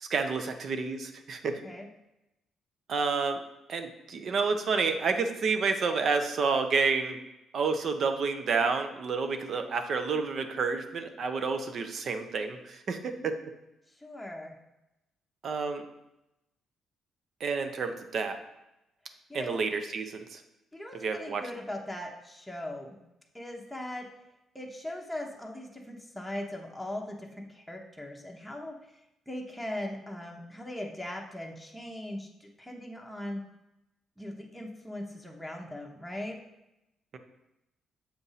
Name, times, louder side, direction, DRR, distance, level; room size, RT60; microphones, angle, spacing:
voice 1, 0.0-1.6 2.9-3.4 3.7-7.2 7.5-13.4 15.4-15.8 17.4-18.4 19.3-20.4 20.9-21.4, right 4 dB, 55° right, 7 dB, 0.7 m, -29 dB
voice 2, 14.0-14.6 19.3-19.6 20.7-23.0 23.3-24.1 24.5-28.7 29.3-33.4 34.2-36.4, left 1 dB, ahead, -1 dB, 0.9 m, -39 dB
7.2 x 2.6 x 5.6 m, 0.90 s
cardioid pair, 90°, 0 cm